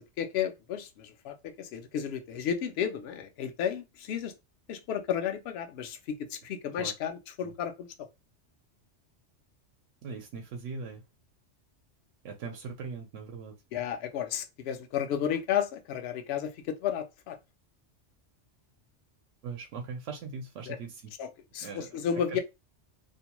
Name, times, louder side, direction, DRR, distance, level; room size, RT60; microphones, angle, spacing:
voice 1, 0.2-4.3 4.7-6.0 6.3-7.9 13.7-17.4 20.7-20.8 21.2-21.3 21.5-22.4, left 8 dB, 65° left, 0.7 m, -32 dB
voice 2, 10.0-11.0 12.2-13.6 19.4-21.1 21.6-22.0 22.3-22.4, right 5 dB, 85° right, 0.9 m, -40 dB
2.6 x 2.1 x 2.9 m
omnidirectional pair, 1.2 m